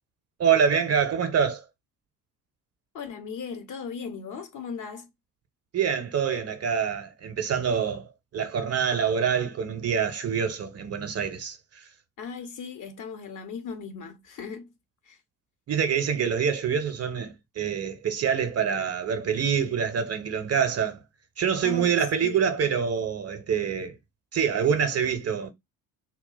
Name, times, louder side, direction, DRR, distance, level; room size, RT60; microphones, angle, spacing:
voice 1, 0.4-1.6 5.7-8.1 8.3-11.6 15.7-21.0 21.4-24.0 24.3-25.5, right 7 dB, 35° right, 0.7 m, -26 dB
voice 2, 2.9-5.1 12.2-14.7 15.1-15.2 21.6-22.0 22.2-22.4, left 6 dB, 40° left, 0.8 m, -37 dB
3.7 x 2.4 x 3.9 m
figure-of-eight pair, 45°, 47 cm